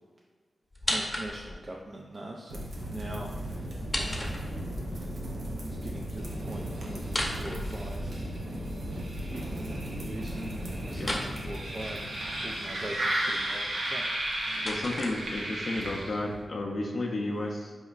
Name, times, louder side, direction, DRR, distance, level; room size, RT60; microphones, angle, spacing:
sound 1, 0.7-1.7 3.7-4.9 7.0-8.3 11.0-11.3 14.0-15.7, left 1 dB, 25° left, 0.7 m, -35 dB
voice 1, 0.8-4.4 5.5-8.2 8.6-14.0 14.5-14.7, right 1 dB, 45° right, -1 dB, 0.3 m, -43 dB
sound 2, 2.5-16.4, right 1 dB, 80° right, 0.6 m, -34 dB
voice 2, 10.9-11.2 14.6-17.7, left 2 dB, 65° left, -1 dB, 0.4 m, -32 dB
4.2 x 2.9 x 2.4 m, 1.5 s
cardioid pair, 60°, 0 cm